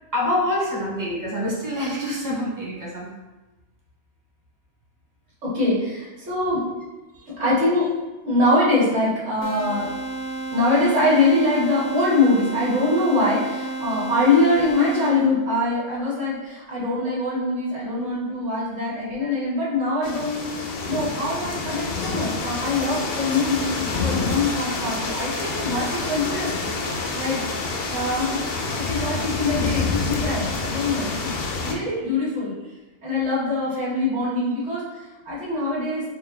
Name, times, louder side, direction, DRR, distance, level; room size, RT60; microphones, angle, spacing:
voice 1, 0.1-3.1 30.9-31.2, left 1 dB, 20° right, -5 dB, 0.8 m, -26 dB
voice 2, 5.4-6.7 7.4-7.9 8.2-9.9 10.5-20.5 20.9-26.7 27.1-27.4 27.9-28.4 28.7-31.3 31.6-32.5 33.0-34.8 35.3-36.0, left 2 dB, 90° right, -9 dB, 1.7 m, -23 dB
sound 1, 9.4-15.4, right 2 dB, 80° left, 1.1 m, -31 dB
sound 2, 20.0-31.8, left 3 dB, 60° left, 0.7 m, -28 dB
4.5 x 2.3 x 3.2 m, 1.1 s
omnidirectional pair, 1.2 m